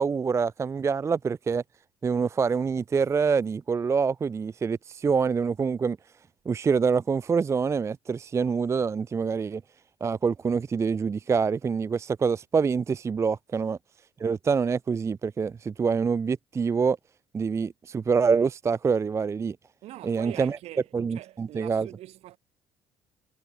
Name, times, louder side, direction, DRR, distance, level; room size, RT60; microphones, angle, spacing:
voice 1, 0.0-1.6 2.0-6.0 6.5-9.6 10.0-13.8 14.2-17.0 17.3-19.6 20.0-20.6 20.9-21.9, right 5 dB, 25° right, 0.4 m, -26 dB
voice 2, 19.8-22.4, right 15 dB, 65° right, 4.1 m, -43 dB
hypercardioid pair, 65°, 11 cm